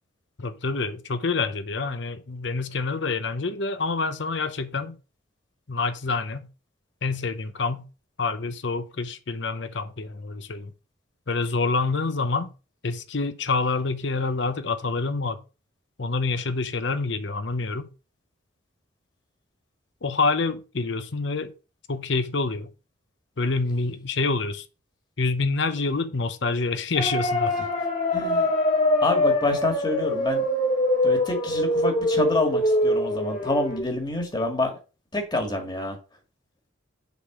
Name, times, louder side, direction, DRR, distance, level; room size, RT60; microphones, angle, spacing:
voice 1, 0.4-5.0 5.7-6.5 7.0-7.8 8.2-10.7 11.3-12.5 12.8-15.4 16.0-17.9 20.0-21.5 21.9-22.7 23.4-24.6 25.2-27.5, left 3 dB, 65° left, 0.8 m, -27 dB
sound 1, 26.9-33.8, left 1 dB, 40° left, 2.1 m, -23 dB
voice 2, 28.1-28.5 29.0-30.4 31.0-34.8 35.1-36.0, left 1 dB, 20° left, 1.8 m, -27 dB
7.0 x 3.9 x 6.1 m
head